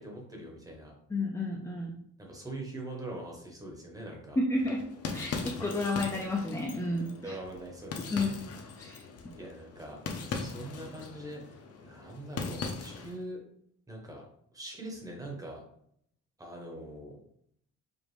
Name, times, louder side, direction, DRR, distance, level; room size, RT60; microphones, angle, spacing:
voice 1, 0.0-0.9 2.2-4.4 7.2-8.3 9.4-10.0 10.3-13.4 13.9-14.2 14.5-15.6 16.4-17.2, right 1 dB, 10° right, -1 dB, 0.8 m, -43 dB
voice 2, 1.1-1.9 4.4-4.8 5.1-7.1 8.1-8.3 8.8-9.0, left 2 dB, 10° left, -1 dB, 0.3 m, -31 dB
sound 1, 4.6-13.2, left 4 dB, 50° left, 0.6 m, -40 dB
5.0 x 2.5 x 3.1 m, 0.68 s
cardioid pair, 180°, 31 cm